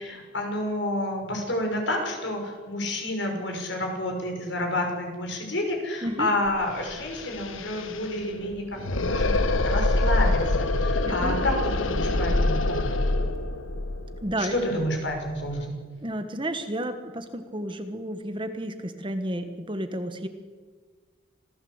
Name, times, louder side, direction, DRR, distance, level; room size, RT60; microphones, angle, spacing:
voice 1, 0.0-13.1 14.4-15.7, left 1 dB, 65° left, 2 dB, 6.0 m, -29 dB
sound 1, 6.5-6.6 6.8-15.6, left 2 dB, 90° left, 1.4 m, -26 dB
voice 2, 11.0-11.3 14.2-14.5 16.0-20.3, right 1 dB, 25° right, 8 dB, 1.4 m, -31 dB
26.5 x 16.0 x 8.1 m, 1.5 s
head